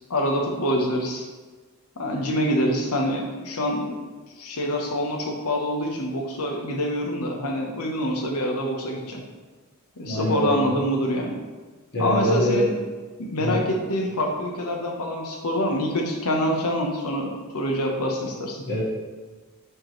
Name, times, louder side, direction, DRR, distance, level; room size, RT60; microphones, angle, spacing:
voice 1, 0.1-1.2 2.0-4.0 4.4-9.2 10.0-11.4 12.0-12.7 13.2-18.6, equal, 90° left, 1 dB, 1.0 m, -26 dB
voice 2, 10.0-10.7 11.9-12.6 13.4-13.6 18.7-18.8, equal, 50° left, -7 dB, 1.8 m, -24 dB
6.4 x 4.8 x 3.2 m, 1.3 s
head